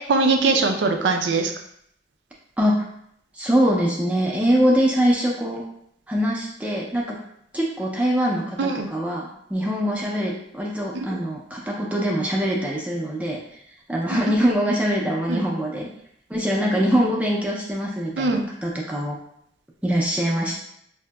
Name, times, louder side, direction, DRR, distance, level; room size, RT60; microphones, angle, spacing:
voice 1, 0.1-1.5 8.6-8.9 10.9-11.1 15.3-15.4 18.2-18.5, right 3 dB, 90° right, 4 dB, 0.5 m, -21 dB
voice 2, 3.3-5.6 6.1-7.2 7.5-13.6 13.9-15.9 16.3-19.2 19.8-20.6, equal, 10° right, -3 dB, 0.5 m, -23 dB
4.9 x 2.7 x 2.2 m, 0.71 s
head